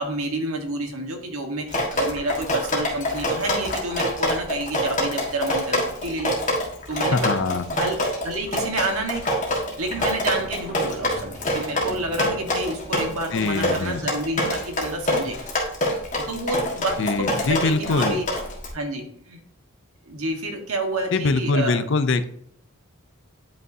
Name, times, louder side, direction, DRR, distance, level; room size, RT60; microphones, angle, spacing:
voice 1, 0.0-6.3 6.9-9.4 9.8-15.6 16.2-18.3 18.7-19.4 20.0-21.8, right 2 dB, 90° right, 3 dB, 1.5 m, -29 dB
Drip, 1.7-18.7, left 1 dB, 35° left, 1.6 m, -26 dB
voice 2, 7.1-7.6 13.3-14.0 17.0-18.2 21.1-22.3, left 3 dB, 55° left, 11 dB, 0.5 m, -23 dB
sound 1, 9.8-13.9, equal, ahead, 3.2 m, -41 dB
10.0 x 5.4 x 2.8 m, 0.69 s
head